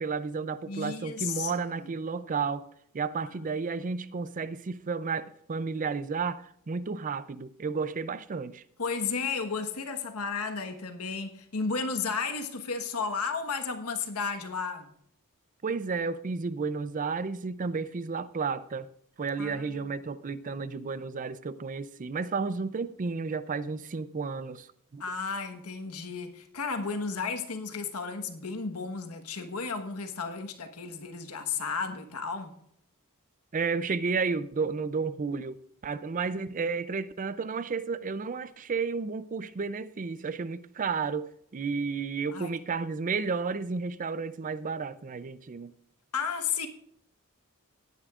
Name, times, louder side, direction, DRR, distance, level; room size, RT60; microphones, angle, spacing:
voice 1, 0.0-2.7 2.9-8.6 15.6-18.9 19.2-24.7 24.9-25.0 33.5-35.6 35.8-45.7, right 4 dB, 35° right, 0.4 m, -32 dB
voice 2, 0.6-1.9 3.4-3.5 8.8-14.9 19.4-19.9 25.0-32.5 42.3-42.5 46.1-46.7, left 5 dB, 90° left, 1.3 m, -33 dB
17.5 x 9.9 x 2.4 m
head